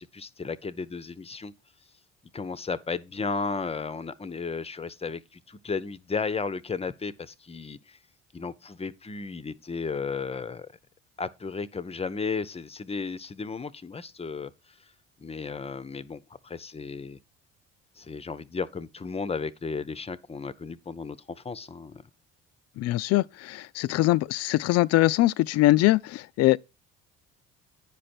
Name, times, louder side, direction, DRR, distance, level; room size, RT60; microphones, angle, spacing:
voice 1, 0.0-1.5 2.3-8.0 8.3-10.7 11.2-14.5 15.2-17.2 18.0-22.0, left 4 dB, 20° left, 0.6 m, -34 dB
voice 2, 22.8-26.6, left 17 dB, 55° left, 0.4 m, -22 dB
9.8 x 5.2 x 4.3 m
supercardioid pair, 70°, 30 cm